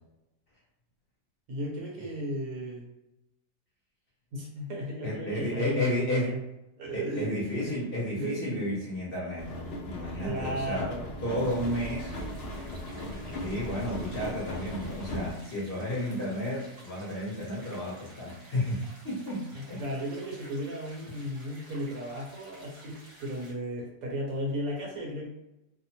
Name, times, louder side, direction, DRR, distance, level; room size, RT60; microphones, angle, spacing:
voice 1, 1.5-2.9 4.3-6.4 6.8-7.7 8.2-8.6 10.2-11.1 19.5-25.3, equal, 65° right, -2 dB, 1.2 m, -35 dB
voice 2, 5.0-6.4 6.9-9.5 9.8-10.9 11.2-12.1 13.1-19.8 21.1-21.2, left 1 dB, 45° left, -6 dB, 0.8 m, -32 dB
sound 1, 9.4-15.3, equal, 85° left, 0.5 m, -37 dB
sound 2, 11.4-23.5, right 1 dB, 45° right, 0.9 m, -53 dB
2.8 x 2.1 x 2.8 m, 0.91 s
omnidirectional pair, 1.7 m